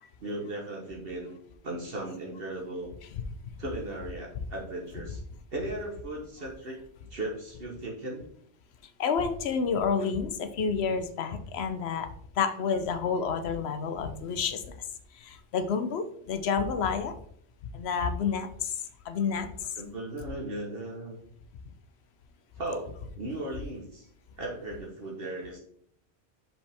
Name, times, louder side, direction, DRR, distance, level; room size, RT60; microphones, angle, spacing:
voice 1, 0.2-1.3 1.6-2.9 3.6-5.2 5.5-6.8 7.1-8.2 19.8-21.2 22.6-24.1 24.4-25.6, right 1 dB, 55° right, -2 dB, 1.3 m, -37 dB
voice 2, 9.0-12.1 12.3-17.1 17.6-19.8, left 6 dB, 65° left, 9 dB, 0.9 m, -30 dB
6.0 x 5.2 x 3.5 m, 0.65 s
omnidirectional pair, 1.2 m